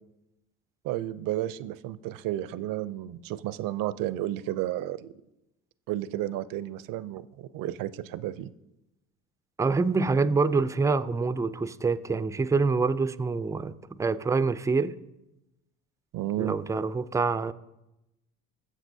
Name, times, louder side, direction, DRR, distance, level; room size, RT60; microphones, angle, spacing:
voice 1, 0.8-5.1 5.9-8.5 16.1-16.5, right 14 dB, 70° right, 16 dB, 0.5 m, -32 dB
voice 2, 9.6-15.0 16.4-17.5, right 4 dB, 10° right, 14 dB, 0.3 m, -26 dB
19.5 x 7.3 x 2.7 m, 0.94 s
supercardioid pair, 85°, 35 cm